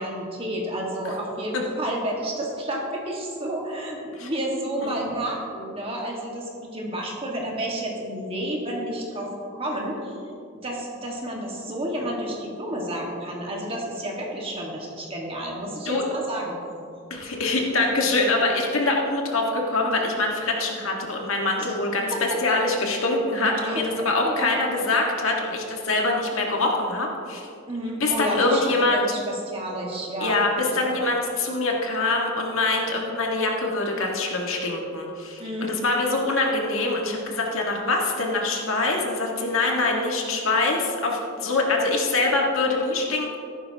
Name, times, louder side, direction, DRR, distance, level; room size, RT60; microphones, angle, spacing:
voice 1, 0.0-10.2 10.6-16.5 21.6-21.8 22.1-22.6 23.6-23.8 24.2-24.6 27.7-30.4 30.8-31.0 35.4-35.7, right 1 dB, 25° right, -2 dB, 1.7 m, -30 dB
voice 2, 17.1-27.5 28.0-29.0 30.2-43.4, left 2 dB, 75° left, 0 dB, 1.7 m, -24 dB
13.5 x 11.5 x 2.9 m, 2.6 s
head